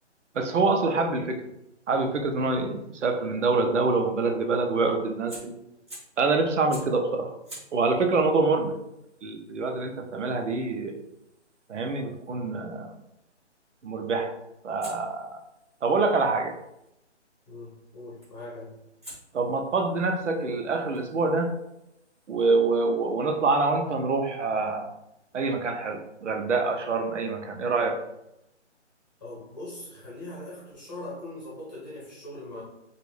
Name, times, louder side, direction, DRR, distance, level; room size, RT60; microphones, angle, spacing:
voice 1, 0.3-1.5 1.9-5.6 6.2-7.3 7.7-8.8 9.2-11.0 11.7-12.9 13.8-14.3 14.6-15.4 15.8-16.6 19.3-21.5 22.3-24.9 25.3-28.0, right 3 dB, 80° right, 4 dB, 0.7 m, -26 dB
Fire, 5.3-6.2 6.7-7.0 7.4-12.4 14.8-16.9 18.2-18.5 19.0-22.4, right 1 dB, 25° right, 0.8 m, -50 dB
voice 2, 17.5-18.8 29.2-32.6, left 1 dB, 15° left, -8 dB, 0.9 m, -41 dB
3.1 x 2.5 x 3.1 m, 0.86 s
hypercardioid pair, 180°, 35 cm